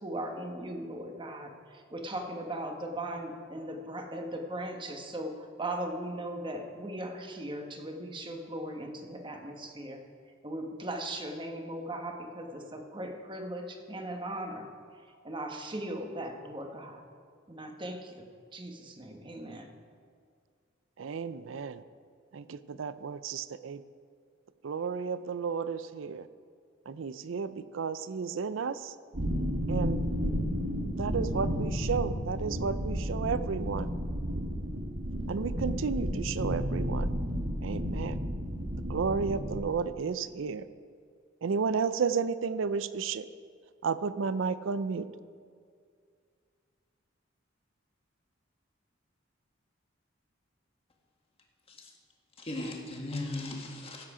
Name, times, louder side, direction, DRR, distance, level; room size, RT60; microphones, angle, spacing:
voice 1, 0.0-10.0 10.4-14.6 15.2-17.0 17.5-18.3 18.5-19.7, right 1 dB, 25° right, 3 dB, 1.3 m, -38 dB
voice 2, 21.0-21.8 22.3-23.8 24.6-26.3 26.9-28.9 29.7-30.1 31.0-33.9 35.3-37.1 37.6-38.3 38.9-40.6 41.4-43.3 43.8-45.1, right 5 dB, 85° right, 14 dB, 0.5 m, -32 dB
sound 1, 29.1-39.6, equal, 70° right, 1.8 m, -32 dB
voice 3, 52.4-54.1, left 2 dB, 30° left, 1 dB, 1.7 m, -37 dB
15.5 x 7.6 x 4.9 m, 2.2 s
head